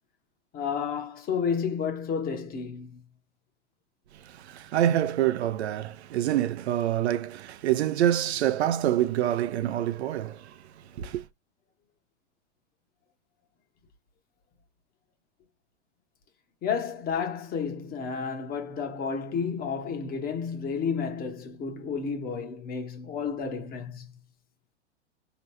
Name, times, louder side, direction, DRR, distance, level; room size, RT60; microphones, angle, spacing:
voice 1, 0.5-3.0 16.6-24.1, left 6 dB, 25° left, 1.0 m, -31 dB
voice 2, 4.1-10.6 10.9-11.2, right 12 dB, 65° right, 0.6 m, -26 dB
4.1 x 3.0 x 3.2 m
hypercardioid pair, 110°, 35 cm